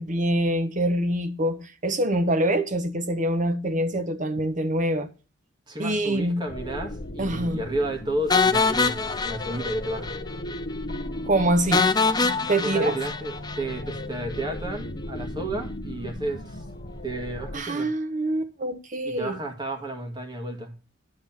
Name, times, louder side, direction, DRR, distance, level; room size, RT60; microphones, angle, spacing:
voice 1, 0.0-5.1 5.8-6.4 7.2-7.6 11.3-11.9 12.5-13.0 17.5-19.4, right 1 dB, 40° right, 1.1 m, -25 dB
voice 2, 5.7-10.1 12.6-16.6 17.0-17.9 19.0-20.7, right 1 dB, 25° right, 2.0 m, -32 dB
sound 1, 6.5-17.6, left 1 dB, 45° left, 0.9 m, -37 dB
sound 2, 8.3-10.2 10.5-10.6 10.9-11.0 11.7-14.0, left 4 dB, 20° left, 0.6 m, -24 dB
11.0 x 4.0 x 5.8 m
head